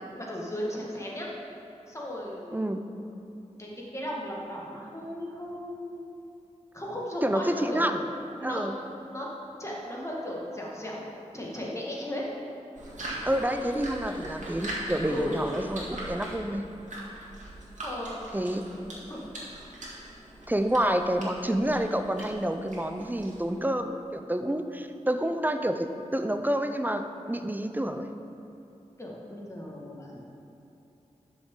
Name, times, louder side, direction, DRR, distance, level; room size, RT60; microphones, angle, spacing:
voice 1, 0.2-1.3 1.9-2.8 3.6-6.2 6.7-7.8 8.4-8.6 9.0-9.3 9.6-11.0 11.3-12.3 15.1-15.4 17.8-18.2 18.8-19.2 29.0-30.2, left 1 dB, 25° left, -4 dB, 1.8 m, -36 dB
voice 2, 2.5-2.8 7.2-8.0 8.4-8.7 13.3-16.7 18.3-18.7 20.5-27.0 27.3-28.1, right 1 dB, 15° right, 7 dB, 0.5 m, -28 dB
sound 1, 12.7-23.6, right 1 dB, 75° right, 1.9 m, -41 dB
11.0 x 6.4 x 3.8 m, 2.8 s
wide cardioid pair, 70°, 13 cm